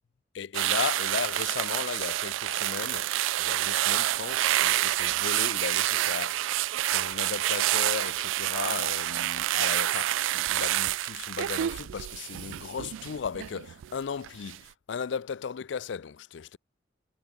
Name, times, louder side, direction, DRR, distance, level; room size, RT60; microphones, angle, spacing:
voice 1, 0.3-3.1 3.4-16.6, left 6 dB, 70° left, 0.4 m, -36 dB
sound 1, 0.5-13.9 14.2-14.6, right 14 dB, 90° right, 0.3 m, -28 dB
head